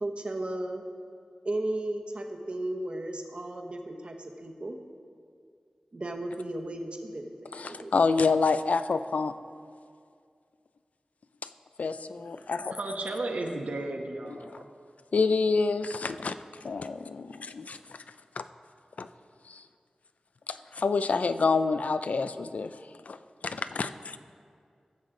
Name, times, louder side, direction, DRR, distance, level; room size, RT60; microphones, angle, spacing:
voice 1, 0.0-0.8 1.4-4.8 5.9-7.9, right 1 dB, 50° right, 3 dB, 1.0 m, -35 dB
voice 2, 7.5-9.3 11.8-12.8 15.1-16.4 16.6-18.0 18.4-18.5 19.0-19.1 19.5-19.6 20.5-22.8 23.1-23.2 23.4-24.2, left 4 dB, 75° left, 11 dB, 0.3 m, -28 dB
voice 3, 12.7-14.7, right 2 dB, 80° right, 2 dB, 1.0 m, -34 dB
15.5 x 6.4 x 3.8 m, 2.2 s
wide cardioid pair, 75°, 2 cm